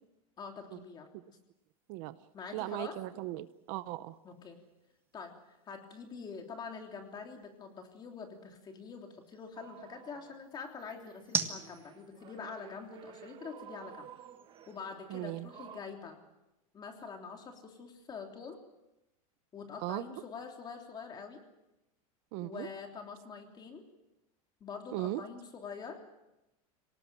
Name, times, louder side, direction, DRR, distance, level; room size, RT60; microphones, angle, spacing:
voice 1, 0.4-1.4 2.3-3.0 4.2-4.6 5.1-14.1 14.7-16.2 16.7-18.6 19.5-21.4 22.4-23.8 24.6-26.0, left 5 dB, 25° left, 3 dB, 3.3 m, -45 dB
sound 1, 1.5-15.8, right 5 dB, 10° right, 1.5 m, -46 dB
voice 2, 2.5-4.2 15.1-15.5 19.8-20.0 22.3-22.7 24.9-25.2, right 17 dB, 50° right, 14 dB, 0.8 m, -37 dB
sound 2, 9.5-10.5 10.8-15.8, right 10 dB, 25° right, 1.3 m, -53 dB
26.0 x 18.5 x 7.6 m, 0.93 s
supercardioid pair, 150°, 18 cm